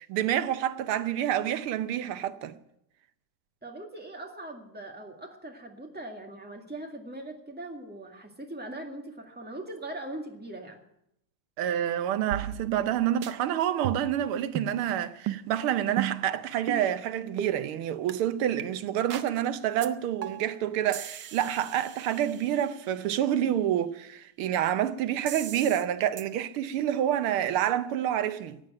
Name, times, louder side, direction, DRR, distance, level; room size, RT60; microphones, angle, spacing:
voice 1, 0.0-2.6 11.6-28.6, right 11 dB, 90° right, 1.7 m, -28 dB
voice 2, 3.6-10.8, right 1 dB, 5° right, 1.8 m, -41 dB
sound 1, 12.3-12.9 13.2-13.3 13.8-14.2 14.6-14.8 15.3-15.4 16.0-16.3 16.7-16.8 17.4-17.5 18.1-18.2 18.6-18.7 19.1-19.3 19.8-19.9 20.2-20.5 20.9-22.8 25.3-25.8 26.2-26.3, right 10 dB, 65° right, 1.3 m, -36 dB
15.5 x 9.1 x 8.8 m
omnidirectional pair, 2.3 m